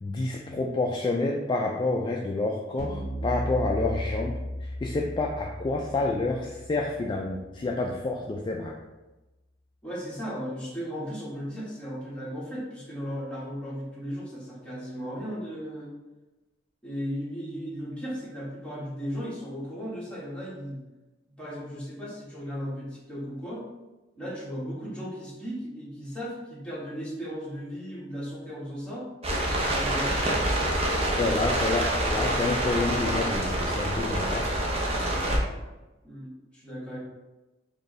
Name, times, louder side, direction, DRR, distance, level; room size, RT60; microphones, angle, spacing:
voice 1, 0.0-4.3 4.6-8.8 31.2-34.5, left 2 dB, 25° left, 0 dB, 0.3 m, -28 dB
sound 1, 2.8-8.1, equal, 65° right, 1.4 m, -36 dB
voice 2, 9.8-15.9 16.8-20.8 21.4-23.6 24.2-29.1 29.6-30.4 36.0-37.0, equal, 5° left, -8 dB, 1.3 m, -36 dB
sound 2, 29.2-35.4, right 1 dB, 35° right, 0.7 m, -27 dB
4.6 x 2.6 x 3.1 m, 1.1 s
head